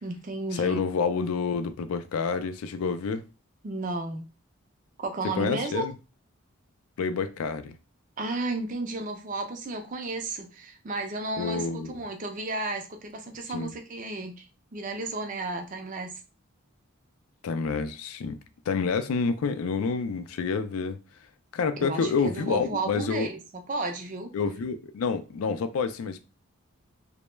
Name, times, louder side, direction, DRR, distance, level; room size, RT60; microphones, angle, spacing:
voice 1, 0.0-0.9 3.6-4.2 5.0-5.8 8.2-14.5 14.7-16.2 21.8-23.4 23.7-24.3, right 2 dB, 35° right, 0.4 m, -33 dB
voice 2, 0.5-3.2 5.3-5.9 7.0-7.8 11.4-12.0 13.5-13.7 17.4-18.4 18.7-21.0 21.5-23.3 24.3-26.2, left 5 dB, 80° left, 0.4 m, -28 dB
2.2 x 2.0 x 3.0 m
head